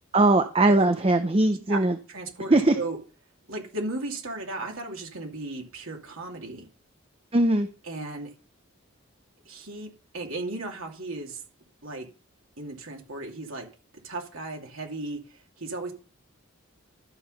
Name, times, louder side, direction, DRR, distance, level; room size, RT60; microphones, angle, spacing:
voice 1, 0.1-2.0 2.5-2.8 7.3-7.7, right 2 dB, 25° right, 8 dB, 0.6 m, -20 dB
voice 2, 2.1-3.0 3.5-6.7 7.8-8.3 9.5-11.4 11.8-12.1 12.6-13.7 14.0-15.9, right 2 dB, 80° right, 1 dB, 2.7 m, -35 dB
12.5 x 6.2 x 5.4 m, 0.36 s
head